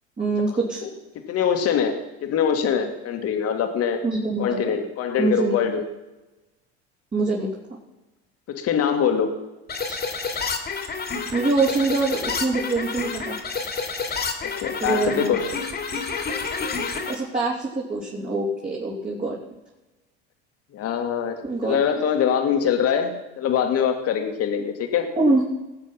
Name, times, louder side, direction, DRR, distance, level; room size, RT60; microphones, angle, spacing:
voice 1, 0.2-0.8 4.0-4.7 5.2-5.6 7.1-7.5 11.3-13.4 14.8-15.3 15.9-16.0 17.1-19.4 21.4-21.8 25.2-25.4, right 3 dB, 25° right, -4 dB, 3.2 m, -24 dB
voice 2, 1.3-2.0 2.2-4.0 4.4-5.8 8.5-9.3 14.4-15.5 20.7-25.1, left 8 dB, 50° left, 5 dB, 2.2 m, -23 dB
sound 1, 9.7-17.2, left 4 dB, 30° left, 2.5 m, -29 dB
19.0 x 7.4 x 5.8 m, 1.1 s
hypercardioid pair, 90°, 32 cm